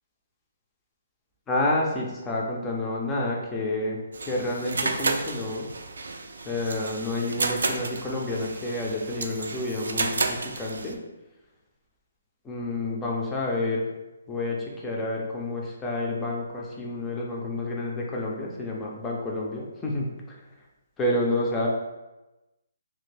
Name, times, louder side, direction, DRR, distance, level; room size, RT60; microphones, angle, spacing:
voice 1, 1.5-4.0 4.3-5.7 6.4-11.0 12.4-13.9 14.3-20.4 21.0-21.7, left 2 dB, 10° left, -3 dB, 0.4 m, -29 dB
sound 1, 4.1-10.9, right 3 dB, 80° right, 0.3 m, -31 dB
2.9 x 2.5 x 3.2 m, 1.0 s
hypercardioid pair, 175°, 0 cm